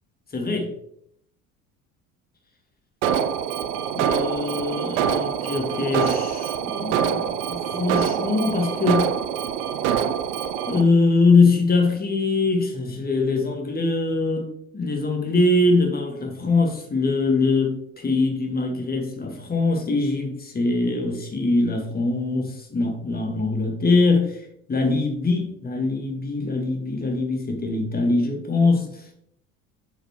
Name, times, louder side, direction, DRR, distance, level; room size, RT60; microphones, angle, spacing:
voice 1, 0.3-0.7 3.9-7.3 7.7-9.1 10.7-14.5 14.7-24.4 24.7-28.8, left 3 dB, 20° left, 2 dB, 1.9 m, -22 dB
Alarm, 3.0-10.8, right 8 dB, 60° right, 0.7 m, -25 dB
8.7 x 5.1 x 3.2 m, 0.70 s
figure-of-eight pair, 60°, 44 cm